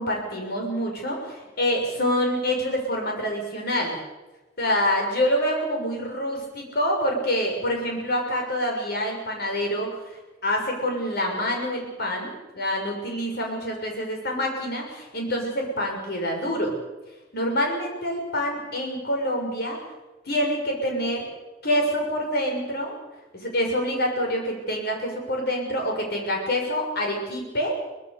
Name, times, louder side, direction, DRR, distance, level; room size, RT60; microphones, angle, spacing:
voice 1, 0.0-4.0 4.6-16.7 17.3-19.8 20.2-21.3 21.6-23.0 23.3-27.8, equal, 55° left, 1 dB, 6.6 m, -26 dB
23.5 x 19.5 x 6.9 m, 1.1 s
head